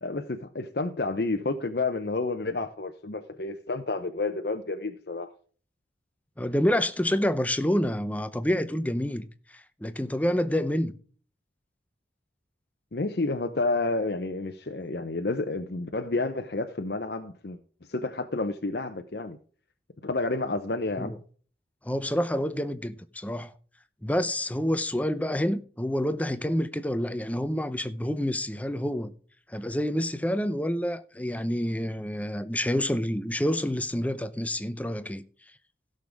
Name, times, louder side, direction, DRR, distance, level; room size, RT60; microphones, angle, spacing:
voice 1, 0.0-5.3 12.9-17.6 17.9-19.4 20.0-21.1, left 3 dB, 60° left, 0.8 m, -30 dB
voice 2, 6.4-10.9 21.0-21.2 21.8-23.5 24.0-29.1 29.5-35.2, equal, 10° left, 0.6 m, -28 dB
16.5 x 6.6 x 3.5 m
head